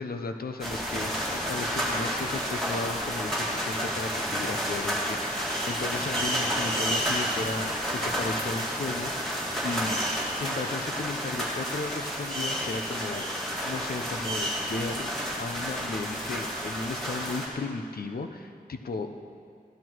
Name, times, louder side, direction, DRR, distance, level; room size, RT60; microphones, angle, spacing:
voice 1, 0.0-10.0 10.4-13.3 13.6-15.1 15.4-19.4, left 3 dB, 80° left, 6 dB, 0.9 m, -35 dB
sound 1, 0.6-17.5, equal, ahead, 3.7 m, -30 dB
15.5 x 11.5 x 4.7 m, 2.2 s
wide cardioid pair, 90°, 15 cm